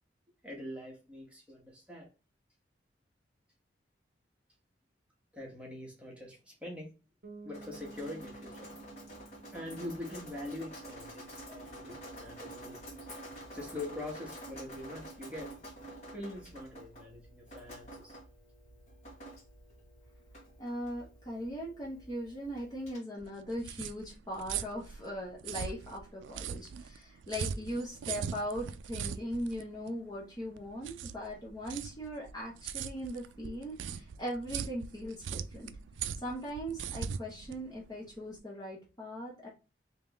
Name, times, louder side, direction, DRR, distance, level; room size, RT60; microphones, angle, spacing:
voice 1, 0.4-2.1 5.3-6.9 7.4-8.7 9.5-12.8 13.5-15.5 16.1-18.2, left 1 dB, 5° right, 1.3 m, -43 dB
Bass guitar, 7.2-10.9, right 3 dB, 55° right, 0.7 m, -52 dB
Drip, 7.5-23.0, right 1 dB, 40° left, 1.8 m, -49 dB
voice 2, 20.6-35.7 36.1-39.5, equal, 20° left, 0.9 m, -39 dB
sound 1, 23.2-38.4, right 7 dB, 85° right, 0.3 m, -41 dB
3.6 x 2.9 x 3.4 m
head